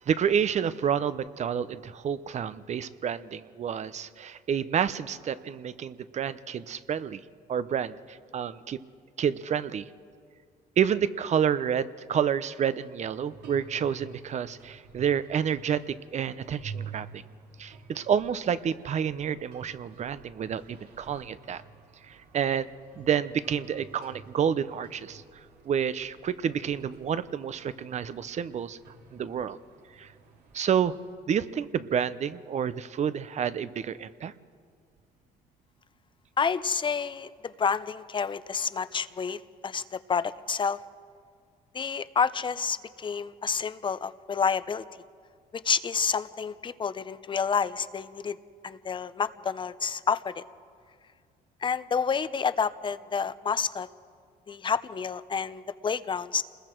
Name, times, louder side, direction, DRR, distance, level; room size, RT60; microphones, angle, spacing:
voice 1, 0.0-7.2 7.5-8.8 9.2-9.9 10.8-17.2 17.6-21.6 22.1-22.7 23.0-25.2 25.7-28.8 29.1-29.6 30.0-30.1 30.5-30.9 31.3-34.3, right 8 dB, 45° right, 15 dB, 0.7 m, -29 dB
sound 1, 13.2-31.1, right 5 dB, 70° right, 2.8 m, -49 dB
voice 2, 36.4-39.8 40.1-40.8 41.7-44.8 45.5-48.4 48.6-50.4 51.6-53.9 54.5-56.4, left 6 dB, 30° left, 14 dB, 0.7 m, -29 dB
28.5 x 20.5 x 4.6 m, 2.1 s
cardioid pair, 110°, 17 cm